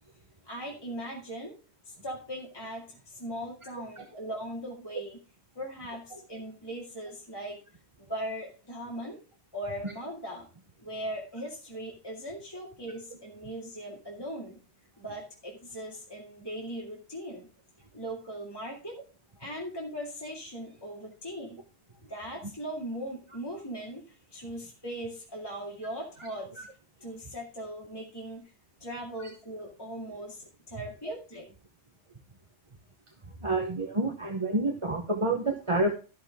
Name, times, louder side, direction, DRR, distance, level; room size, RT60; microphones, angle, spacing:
voice 1, 0.4-1.5 1.9-5.2 5.5-7.6 8.0-9.2 9.5-10.5 10.8-14.6 15.0-17.5 17.9-19.0 19.4-21.6 22.1-26.6 27.0-28.5 28.8-31.5, right 1 dB, 20° left, -3 dB, 2.3 m, -39 dB
voice 2, 33.4-35.9, right 2 dB, 30° right, 3 dB, 1.0 m, -28 dB
13.5 x 6.6 x 3.6 m, 0.35 s
omnidirectional pair, 1.2 m